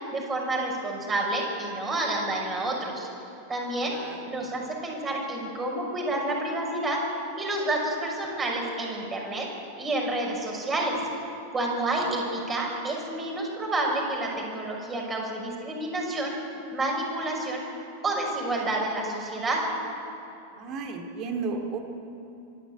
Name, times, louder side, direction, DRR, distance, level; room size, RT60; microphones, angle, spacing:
voice 1, 0.1-3.1 3.5-4.0 4.3-7.0 7.4-9.5 9.8-11.0 11.5-16.4 16.7-17.6 18.0-19.6, right 2 dB, 20° right, -1 dB, 5.9 m, -29 dB
voice 2, 20.6-21.8, right 4 dB, 35° right, 4 dB, 2.8 m, -33 dB
25.5 x 12.0 x 8.5 m, 2.8 s
figure-of-eight pair, 90°, 0 cm